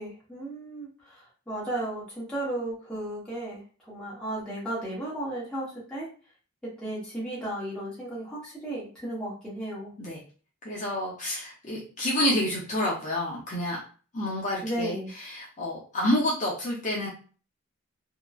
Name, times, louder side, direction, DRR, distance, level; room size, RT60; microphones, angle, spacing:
voice 1, 0.0-6.1 6.6-9.9 14.6-15.1, right 1 dB, 5° left, -7 dB, 0.9 m, -34 dB
voice 2, 10.6-13.8 14.1-15.0 15.2-17.1, left 1 dB, 35° left, -5 dB, 0.6 m, -28 dB
2.8 x 2.1 x 2.3 m, 0.39 s
head